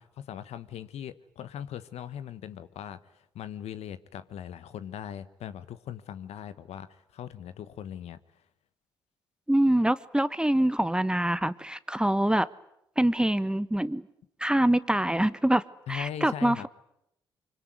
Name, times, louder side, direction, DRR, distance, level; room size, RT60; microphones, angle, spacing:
voice 1, 0.0-8.2 15.9-16.7, left 9 dB, 65° left, 14 dB, 1.2 m, -40 dB
voice 2, 9.5-12.5 13.0-14.0 14.4-15.6 15.9-16.7, right 1 dB, 5° right, 15 dB, 1.3 m, -25 dB
25.0 x 24.5 x 9.6 m, 0.78 s
hypercardioid pair, 40°, 12 cm